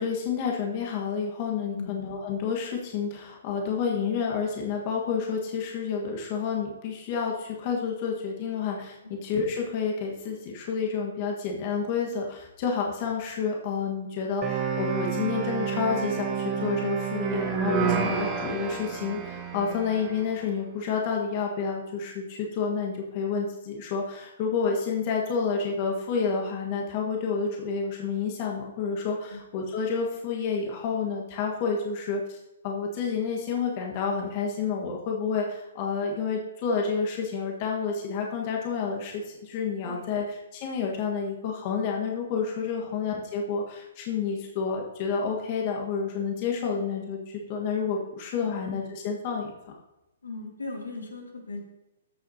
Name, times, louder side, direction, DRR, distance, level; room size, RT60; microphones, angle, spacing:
voice 1, 0.0-32.4 32.6-49.5, left 5 dB, 40° left, 0 dB, 1.5 m, -29 dB
sound 1, 14.4-20.4, right 7 dB, 25° right, 1.0 m, -30 dB
voice 2, 39.8-40.2 42.8-42.9 48.4-48.6 50.2-51.6, left 3 dB, 85° left, 2 dB, 1.9 m, -38 dB
13.5 x 6.6 x 2.8 m, 0.95 s
hypercardioid pair, 130°, 0 cm